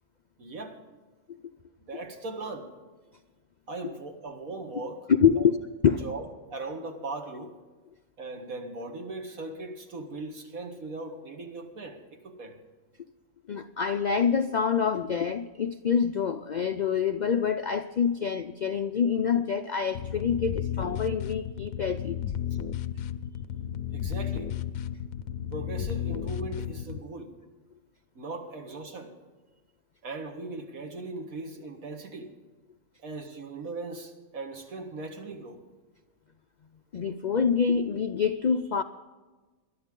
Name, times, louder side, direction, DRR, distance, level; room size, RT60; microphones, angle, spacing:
voice 1, 0.4-0.8 1.9-2.7 3.7-5.0 5.4-5.5 6.0-7.5 8.2-12.6 23.9-24.5 25.5-27.3 28.2-29.1 30.0-32.3 33.0-35.6, right 2 dB, 85° right, 4 dB, 2.1 m, -39 dB
voice 2, 5.2-6.1 13.5-22.2 36.9-38.8, left 7 dB, 65° left, 9 dB, 0.4 m, -26 dB
sound 1, 20.0-27.0, left 10 dB, 85° left, 1.1 m, -33 dB
21.5 x 11.5 x 3.8 m, 1.3 s
omnidirectional pair, 1.4 m